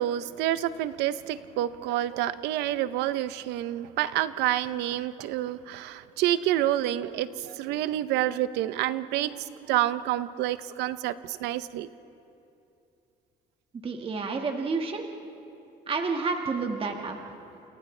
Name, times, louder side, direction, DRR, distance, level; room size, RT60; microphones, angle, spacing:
voice 1, 0.0-11.9, right 13 dB, 90° right, 14 dB, 0.7 m, -28 dB
voice 2, 13.8-15.0 15.9-17.2, right 4 dB, 35° right, 3 dB, 1.7 m, -29 dB
30.0 x 28.5 x 3.3 m, 2.7 s
cardioid pair, 110°, 17 cm